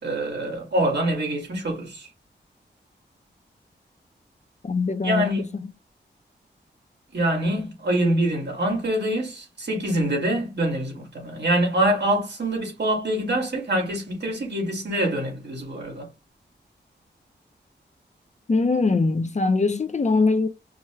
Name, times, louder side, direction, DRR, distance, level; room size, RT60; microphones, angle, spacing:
voice 1, 0.0-2.1 5.0-5.4 7.1-16.1, right 1 dB, 70° right, 2.3 m, -25 dB
voice 2, 4.6-5.6 18.5-20.5, left 3 dB, 40° left, 0.7 m, -22 dB
4.9 x 2.3 x 3.1 m
wide cardioid pair, 80°, 19 cm